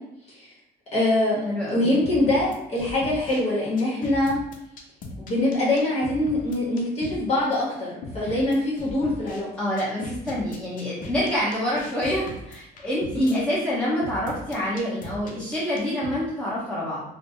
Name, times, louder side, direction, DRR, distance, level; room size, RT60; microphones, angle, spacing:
voice 1, 0.9-1.4 1.7-4.4 5.2-9.5 13.1-13.4, left 1 dB, 40° left, -6 dB, 1.2 m, -23 dB
voice 2, 1.4-2.0 8.2-8.3 9.6-17.0, equal, 5° left, -9 dB, 1.1 m, -27 dB
sound 1, 2.0-3.4 3.8-7.2 7.5-7.6 8.0-9.4 9.8-13.4 14.0-16.1, left 2 dB, 55° left, 0.6 m, -38 dB
3.2 x 2.1 x 2.8 m, 0.83 s
cardioid pair, 110°, 17 cm